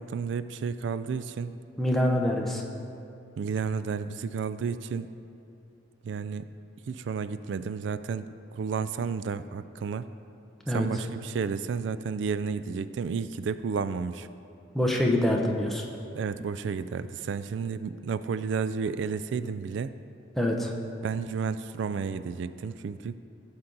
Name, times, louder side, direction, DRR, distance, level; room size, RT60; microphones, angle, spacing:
voice 1, 0.0-1.6 3.4-5.1 6.0-6.5 6.9-10.1 10.7-14.3 16.1-19.9 21.0-23.2, right 5 dB, 75° right, 13 dB, 0.3 m, -32 dB
voice 2, 1.8-2.6 10.7-10.9 14.7-15.8 20.4-20.7, left 1 dB, ahead, -1 dB, 0.8 m, -25 dB
15.5 x 7.1 x 3.9 m, 2.6 s
head